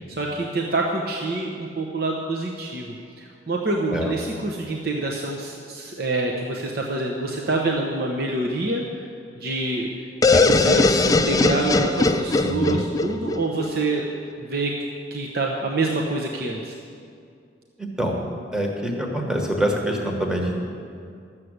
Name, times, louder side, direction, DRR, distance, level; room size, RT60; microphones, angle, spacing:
voice 1, 0.2-8.8 9.4-14.0 14.4-14.8 15.1-16.7, right 2 dB, 55° right, 0 dB, 0.9 m, -26 dB
sound 1, 10.2-14.0, left 3 dB, 20° left, 0.4 m, -20 dB
voice 2, 12.4-12.8 17.8-18.2 18.5-20.6, right 1 dB, 5° right, 0 dB, 1.2 m, -25 dB
12.5 x 7.4 x 8.0 m, 2.3 s
head